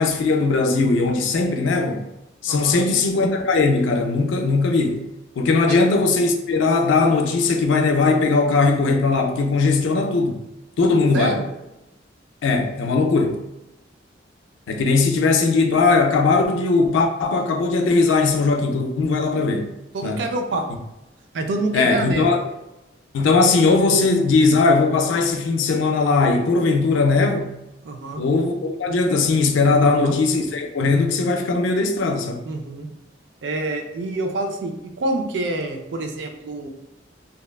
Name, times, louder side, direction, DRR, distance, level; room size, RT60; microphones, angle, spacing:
voice 1, 0.0-2.1 2.4-5.0 5.4-10.4 10.8-11.4 12.4-13.4 14.7-19.7 20.0-20.2 21.7-22.4 23.1-27.5 28.2-32.4, left 3 dB, 90° left, 0.4 m, -19 dB
voice 2, 2.5-2.9 5.7-5.8 11.1-11.5 19.9-20.7 21.3-22.3 27.8-28.2 29.8-30.2 32.5-32.9 33.4-36.7, right 2 dB, 70° right, 0.3 m, -27 dB
2.7 x 2.2 x 2.3 m
head